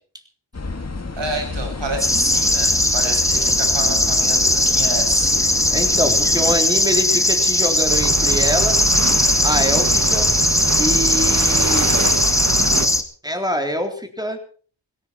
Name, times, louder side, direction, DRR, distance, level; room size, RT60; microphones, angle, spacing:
sound 1, 0.5-6.6, left 3 dB, 35° left, 2.1 m, -30 dB
voice 1, 1.1-5.4, right 2 dB, 70° right, 4 dB, 7.0 m, -29 dB
sound 2, 2.0-13.0, left 1 dB, 5° left, 2.2 m, -18 dB
voice 2, 5.7-8.8 9.4-10.3 10.8-11.9 13.2-14.4, equal, 10° right, 5 dB, 3.7 m, -24 dB
sound 3, 7.9-12.9, right 3 dB, 35° right, 2.0 m, -25 dB
18.0 x 17.5 x 4.4 m, 0.43 s
cardioid pair, 60°, 45 cm